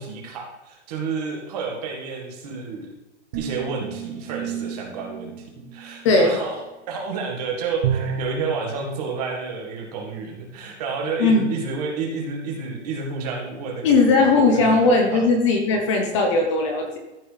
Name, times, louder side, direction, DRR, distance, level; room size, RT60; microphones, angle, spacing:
voice 1, 0.0-2.9 3.3-5.3 5.7-6.6 6.9-14.1 14.5-14.8 15.1-15.2, right 4 dB, 35° right, 1 dB, 1.9 m, -30 dB
sound 1, 3.3-6.7, right 10 dB, 15° right, 0.6 m, -36 dB
voice 2, 6.0-6.4 11.2-11.5 13.8-17.0, left 3 dB, 25° left, 2 dB, 0.9 m, -18 dB
Bowed string instrument, 7.8-8.7, right 6 dB, 60° right, 1.1 m, -25 dB
14.0 x 6.1 x 3.4 m, 1.1 s
hypercardioid pair, 175°, 36 cm